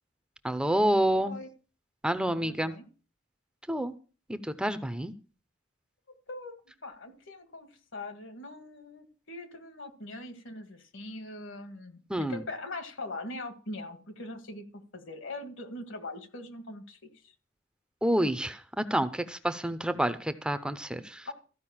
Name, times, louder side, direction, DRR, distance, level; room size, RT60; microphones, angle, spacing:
voice 1, 0.4-1.4 2.0-2.7 3.7-3.9 4.3-5.1 12.1-12.4 18.0-18.6 18.9-21.3, right 1 dB, 5° right, 10 dB, 0.6 m, -28 dB
voice 2, 2.3-2.8 6.3-6.5 6.8-12.0 12.3-17.3 21.3-21.4, left 2 dB, 65° left, 9 dB, 2.0 m, -42 dB
14.0 x 5.2 x 8.7 m, 0.36 s
head